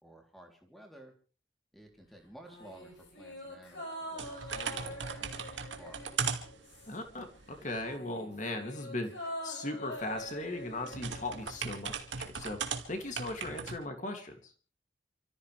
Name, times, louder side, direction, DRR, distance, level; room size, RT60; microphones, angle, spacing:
voice 1, 0.0-1.1 1.7-6.2, right 1 dB, ahead, 2 dB, 3.4 m, -54 dB
sound 1, 2.4-7.2 7.5-11.8 12.1-12.2, equal, 75° left, 6.9 m, -45 dB
sound 2, 4.2-8.0 10.0-13.8, right 6 dB, 80° right, 2.2 m, -38 dB
voice 2, 6.9-14.5, left 2 dB, 40° left, 5 dB, 2.7 m, -38 dB
28.5 x 14.5 x 3.4 m, 0.38 s
head